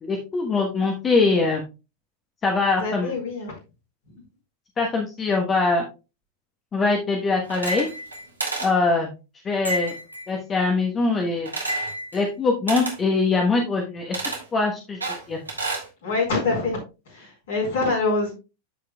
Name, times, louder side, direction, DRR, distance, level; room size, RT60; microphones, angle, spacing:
voice 1, 0.0-1.6 2.4-3.1 4.8-5.8 6.7-7.9 8.6-9.1 9.4-9.9 10.3-11.5 12.1-14.2 14.5-15.0 15.3-15.4, left 3 dB, 20° left, 1 dB, 1.2 m, -22 dB
voice 2, 2.8-3.5 16.0-16.8 17.1-18.3, left 3 dB, 60° left, 0 dB, 4.4 m, -25 dB
sound 1, 7.4-8.1 8.4-8.7 11.5-11.9 12.7-13.0 14.1-14.4 15.0-15.9, right 3 dB, 80° right, 1.9 m, -30 dB
sound 2, 7.7-8.3 9.6-10.3 11.6-12.2, left 1 dB, 85° left, 1.2 m, -30 dB
13.0 x 5.0 x 2.3 m, 0.29 s
figure-of-eight pair, 90°, 0 cm